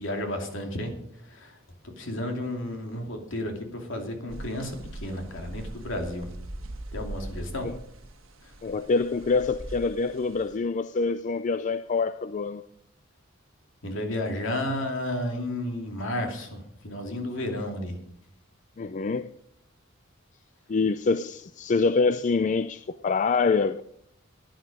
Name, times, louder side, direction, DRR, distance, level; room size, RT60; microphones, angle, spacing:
voice 1, 0.0-1.6 2.0-6.3 6.9-7.7 8.4-8.5 13.8-17.9, left 1 dB, 65° left, 2.7 m, -32 dB
sound 1, 4.3-10.6, right 1 dB, 80° right, 1.4 m, -41 dB
voice 2, 8.6-12.7 18.8-19.3 20.7-23.8, left 4 dB, 35° left, 0.4 m, -25 dB
14.0 x 10.5 x 5.3 m
head